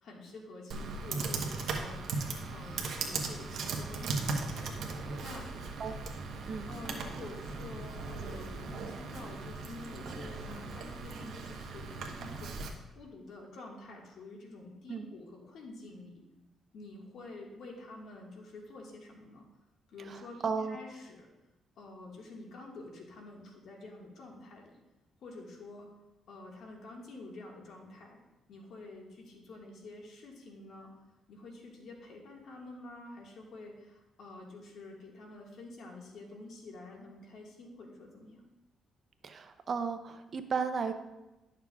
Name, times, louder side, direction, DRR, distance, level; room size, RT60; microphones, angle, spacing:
voice 1, 0.0-4.7 5.2-5.5 6.4-16.2 16.7-19.4 19.9-21.3 21.8-24.7 25.2-25.9 26.3-28.2 28.5-30.9 31.3-38.4, left 2 dB, 70° left, 0 dB, 1.7 m, -48 dB
Computer keyboard, 0.7-12.7, right 4 dB, 65° right, 1.0 m, -38 dB
voice 2, 20.1-20.8 39.2-40.9, right 5 dB, 45° right, 9 dB, 0.6 m, -34 dB
11.0 x 6.7 x 2.4 m, 1.0 s
cardioid pair, 90°, 0 cm